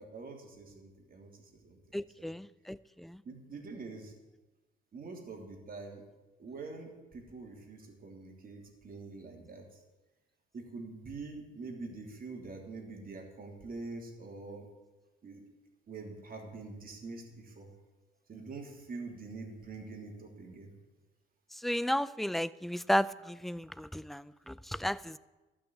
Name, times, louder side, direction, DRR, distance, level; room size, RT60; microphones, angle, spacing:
voice 1, 0.0-2.3 3.2-4.1 4.9-6.0 6.4-9.6 10.5-14.7 15.2-15.4 15.9-17.7 18.3-20.7, right 3 dB, 45° right, 1 dB, 2.9 m, -45 dB
voice 2, 1.9-3.2 21.6-25.2, equal, ahead, 18 dB, 0.4 m, -33 dB
12.5 x 6.2 x 9.3 m, 1.1 s
cardioid pair, 90°, 20 cm